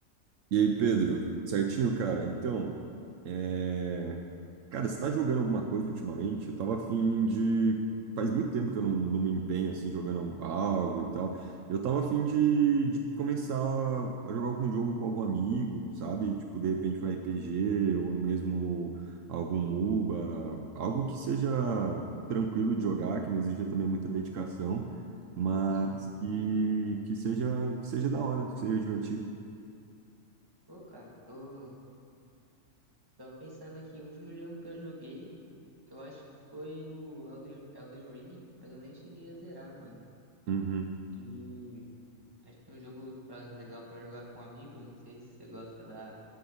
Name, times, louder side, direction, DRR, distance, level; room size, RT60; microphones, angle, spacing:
voice 1, 0.5-2.8 3.2-4.2 4.7-7.8 8.2-24.9 25.4-29.3 40.5-40.9, right 5 dB, 70° right, 3 dB, 1.0 m, -30 dB
voice 2, 25.7-26.1 30.7-31.8 33.2-35.3 35.9-36.2 36.5-40.0 41.1-41.9 42.4-46.2, equal, 15° right, -4 dB, 1.6 m, -46 dB
10.0 x 5.7 x 7.0 m, 2.4 s
omnidirectional pair, 1.4 m